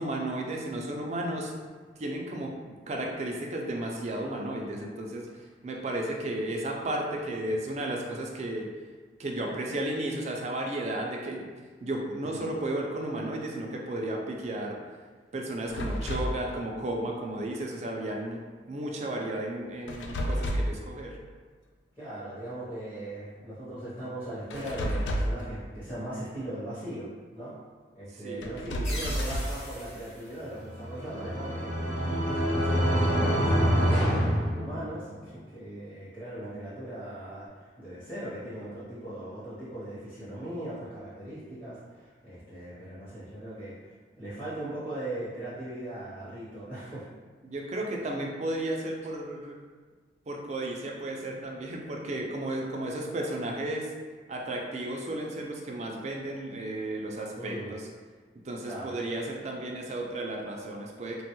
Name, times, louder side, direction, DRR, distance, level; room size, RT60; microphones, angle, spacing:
voice 1, 0.0-1.5 2.0-2.5 2.9-5.3 5.6-8.7 9.2-11.5 11.8-14.8 15.3-18.4 18.7-21.2 28.2-28.6 47.4-49.6 50.3-53.9 54.3-57.8 58.4-61.2, right 1 dB, 40° right, 0 dB, 0.4 m, -33 dB
voice 2, 12.2-12.6 16.2-16.3 22.0-27.6 27.9-43.8 44.2-47.1 57.4-57.7 58.6-59.0, right 1 dB, 15° left, -12 dB, 0.8 m, -39 dB
sound 1, 15.7-16.4 19.9-20.8 24.5-25.5 28.4-29.6, equal, 80° left, 0.3 m, -30 dB
sound 2, 28.8-31.4, left 1 dB, 35° left, 1.0 m, -42 dB
sound 3, 30.6-35.2, equal, 65° left, 1.0 m, -26 dB
3.3 x 2.2 x 2.9 m, 1.5 s
head